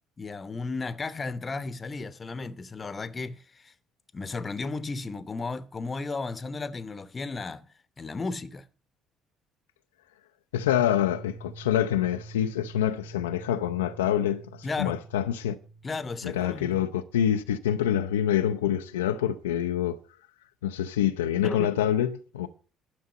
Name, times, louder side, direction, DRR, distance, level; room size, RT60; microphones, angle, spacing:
voice 1, 0.2-3.7 4.1-7.7 8.0-8.7 14.6-15.0 15.8-16.8 21.4-21.8, left 3 dB, 30° left, 0.9 m, -34 dB
voice 2, 10.5-15.6 16.3-20.0 20.6-22.5, left 10 dB, 75° left, 0.5 m, -26 dB
sound 1, 10.5-16.4, right 4 dB, 35° right, 3.6 m, -46 dB
11.5 x 6.4 x 7.8 m
figure-of-eight pair, 55°, 0 cm